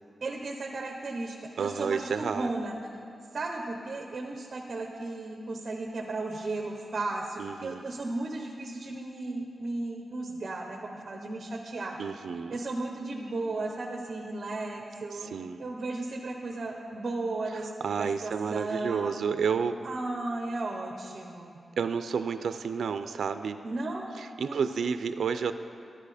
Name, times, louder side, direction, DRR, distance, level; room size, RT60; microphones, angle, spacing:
voice 1, 0.2-2.8 3.3-12.0 12.5-15.3 15.6-19.1 19.8-21.6 23.6-24.1 24.4-24.8, right 2 dB, 40° right, 1 dB, 0.9 m, -35 dB
voice 2, 1.6-2.5 7.4-7.9 12.0-12.6 15.1-15.6 17.5-19.8 21.8-23.6 24.2-25.5, right 6 dB, 85° right, 10 dB, 0.4 m, -31 dB
12.0 x 10.5 x 4.9 m, 2.5 s
wide cardioid pair, 165°, 0 cm